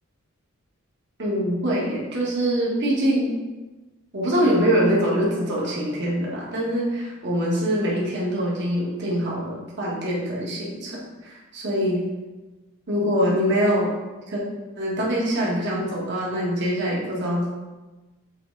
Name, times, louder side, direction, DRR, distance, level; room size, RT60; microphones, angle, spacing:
voice 1, 1.2-3.3 4.1-12.0 12.9-13.9 14.3-14.4 14.8-17.5, equal, 55° right, -4 dB, 1.9 m, -24 dB
7.5 x 3.8 x 4.1 m, 1.2 s
head